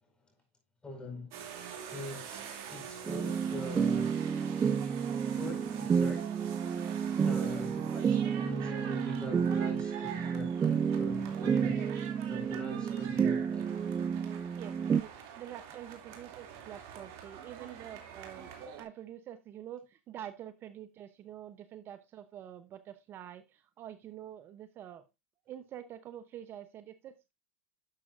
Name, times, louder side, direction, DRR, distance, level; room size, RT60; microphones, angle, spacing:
voice 1, 0.8-1.3 1.9-4.2 4.6-4.8 5.3-6.4 7.2-11.8 12.3-13.8, left 2 dB, 15° left, 5.0 m, -43 dB
sound 1, 1.3-18.8, right 8 dB, 55° right, 2.5 m, -46 dB
sound 2, 3.1-15.0, right 7 dB, 20° right, 0.4 m, -31 dB
voice 2, 7.2-8.5 11.7-11.9 12.9-13.0 14.6-18.5 18.8-25.0 25.5-27.3, right 11 dB, 40° right, 0.8 m, -47 dB
11.5 x 7.1 x 2.5 m
hypercardioid pair, 110°, 6 cm